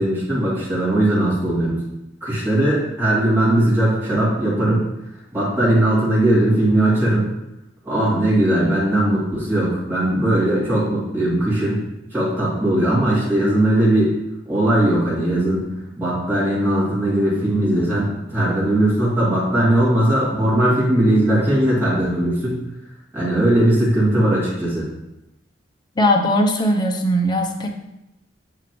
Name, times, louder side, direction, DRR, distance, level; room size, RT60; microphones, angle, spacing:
voice 1, 0.0-1.8 2.2-4.8 5.3-7.2 7.9-11.8 12.1-14.2 14.5-15.7 16.0-22.6 23.1-24.9, right 1 dB, 10° right, -11 dB, 2.5 m, -19 dB
voice 2, 26.0-27.7, equal, 25° left, 2 dB, 0.6 m, -19 dB
7.4 x 5.0 x 3.0 m, 0.91 s
head